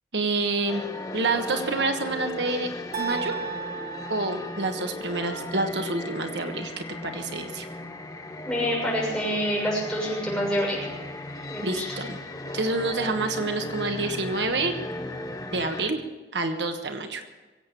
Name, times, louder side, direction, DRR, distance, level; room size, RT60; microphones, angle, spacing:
voice 1, 0.1-0.8 1.1-2.7 3.0-3.3 4.1-7.7 11.6-12.2 12.5-14.7 15.5-16.0 16.3-17.2, right 3 dB, 80° right, 6 dB, 1.3 m, -28 dB
sound 1, 0.7-15.9, left 1 dB, 20° left, 1.0 m, -36 dB
sound 2, 2.9-5.1, right 7 dB, 60° right, 2.5 m, -35 dB
voice 2, 8.4-10.9 11.5-12.0, equal, 5° left, -5 dB, 6.8 m, -27 dB
23.0 x 8.5 x 7.0 m, 1.2 s
head